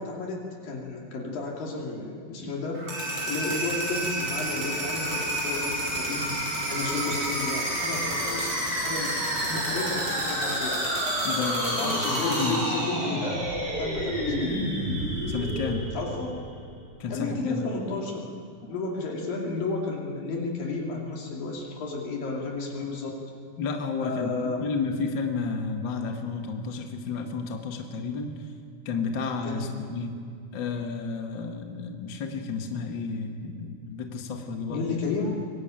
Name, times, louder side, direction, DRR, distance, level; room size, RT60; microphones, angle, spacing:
voice 1, 0.0-2.8 3.3-6.4 6.7-10.8 11.8-13.4 13.8-14.5 15.9-16.4 17.1-18.3 18.6-23.2 24.0-24.6 29.5-29.8 34.7-35.4, left 3 dB, 65° left, -2 dB, 4.3 m, -32 dB
sound 1, 2.7-16.6, right 1 dB, 40° right, 7.0 m, -29 dB
voice 2, 11.2-12.6 15.3-15.9 17.0-17.6 23.6-28.3 28.8-30.1 30.5-34.8, left 4 dB, 45° left, 3 dB, 1.6 m, -32 dB
23.5 x 19.0 x 9.1 m, 2.4 s
omnidirectional pair, 4.3 m